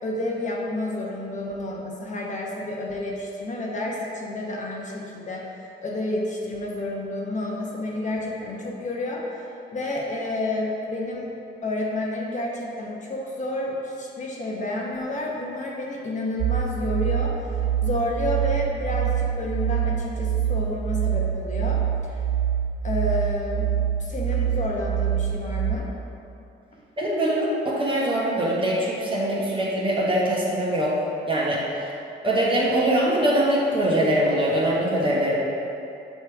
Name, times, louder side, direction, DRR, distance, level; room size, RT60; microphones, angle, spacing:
voice 1, 0.0-5.5 5.8-11.3 11.6-17.5 17.8-22.3 22.8-23.7 24.0-25.9, left 1 dB, 40° left, -3 dB, 1.0 m, -30 dB
sound 1, 16.4-25.8, right 9 dB, 75° right, 0.4 m, -25 dB
voice 2, 27.0-30.9 31.3-31.9 32.2-35.4, right 1 dB, 25° right, -4 dB, 1.3 m, -23 dB
6.9 x 3.2 x 4.7 m, 2.7 s
cardioid pair, 90°, 20 cm